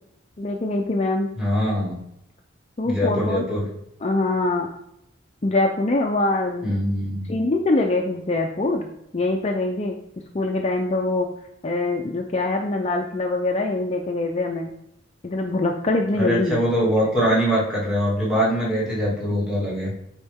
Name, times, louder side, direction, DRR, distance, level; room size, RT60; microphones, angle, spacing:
voice 1, 0.4-1.3 2.8-3.5 4.0-4.7 5.4-6.7 7.3-8.9 9.1-10.0 10.3-11.3 11.6-14.7 15.2-16.6, left 2 dB, 35° left, 2 dB, 0.5 m, -23 dB
voice 2, 1.4-2.0 2.8-3.7 6.6-7.3 16.2-19.9, equal, 5° right, -6 dB, 2.5 m, -23 dB
8.0 x 4.5 x 3.6 m, 0.80 s
head